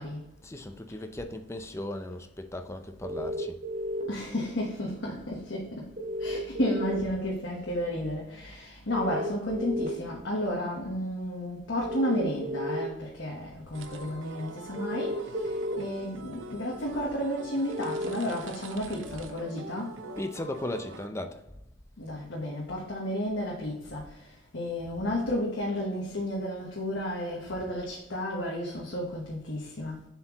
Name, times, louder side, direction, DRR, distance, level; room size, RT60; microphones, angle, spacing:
voice 1, 0.4-3.5 20.2-21.4, left 1 dB, 15° left, 0.6 m, -37 dB
sound 1, 3.0-4.0 6.0-6.9 8.9-9.9 11.8-12.8 14.8-15.7 17.7-18.1, equal, 45° right, 1.2 m, -33 dB
voice 2, 4.0-20.0 22.0-30.0, left 1 dB, 70° left, 1.2 m, -32 dB
sound 2, 13.7-21.1, right 3 dB, 85° right, 0.7 m, -45 dB
7.2 x 4.5 x 3.0 m
head